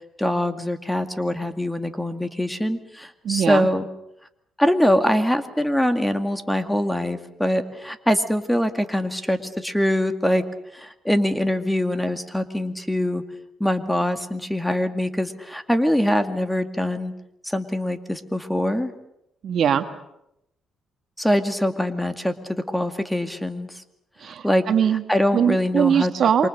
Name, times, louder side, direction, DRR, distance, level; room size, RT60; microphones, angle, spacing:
voice 1, 0.2-3.9 4.6-10.4 10.7-13.2 13.6-17.1 17.4-18.9 21.2-23.7 24.4-24.6 25.1-26.1 26.4-26.5, left 1 dB, 5° left, 8 dB, 2.2 m, -23 dB
voice 2, 3.2-3.7 19.4-19.8 24.2-25.0 25.3-26.5, right 8 dB, 60° right, 8 dB, 1.6 m, -21 dB
28.0 x 24.5 x 6.7 m, 0.82 s
cardioid pair, 90°, 0 cm